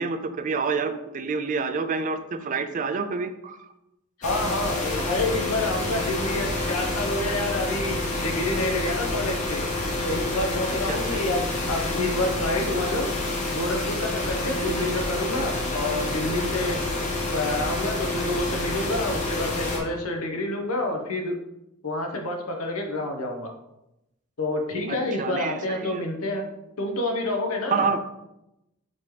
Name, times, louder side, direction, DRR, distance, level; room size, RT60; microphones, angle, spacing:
voice 1, 0.0-3.6 10.9-11.2 14.4-14.7 24.9-26.0 27.7-28.0, right 4 dB, 35° right, 10 dB, 0.3 m, -28 dB
voice 2, 4.2-9.6 10.0-13.1 13.5-16.8 17.3-21.4 21.8-23.5 24.4-26.5 26.8-28.0, left 2 dB, 90° left, 2 dB, 0.8 m, -28 dB
sound 1, 4.2-19.8, left 2 dB, 35° left, 0.9 m, -28 dB
5.6 x 3.0 x 3.2 m, 0.89 s
head